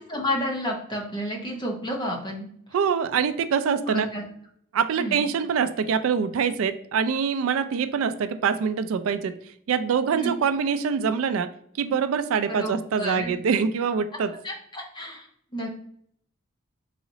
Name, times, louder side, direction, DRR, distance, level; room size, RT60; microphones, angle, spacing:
voice 1, 0.1-2.5 3.9-4.2 5.0-5.3 10.1-10.3 12.5-13.3 14.3-15.3 15.5-15.7, equal, 25° left, 0 dB, 0.8 m, -31 dB
voice 2, 2.7-4.1 4.7-9.3 9.7-11.5 11.8-14.3, right 6 dB, 85° right, 11 dB, 0.3 m, -24 dB
4.0 x 2.9 x 2.6 m, 0.66 s
head